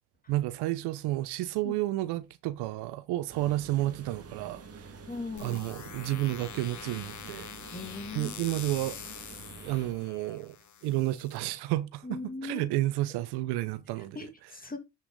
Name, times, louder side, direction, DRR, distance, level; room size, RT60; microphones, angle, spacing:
voice 1, 0.3-4.9 5.4-7.5 8.1-10.6 10.8-14.5, right 16 dB, 75° right, 0.9 m, -31 dB
sound 1, 3.3-9.9, right 4 dB, 35° right, 2.1 m, -48 dB
voice 2, 5.1-5.6 7.7-8.3 12.0-12.7 14.2-14.8, left 3 dB, 20° left, 2.5 m, -39 dB
sound 2, 5.4-11.4, left 8 dB, 45° left, 1.3 m, -45 dB
8.9 x 5.7 x 3.9 m
hypercardioid pair, 60°, 40 cm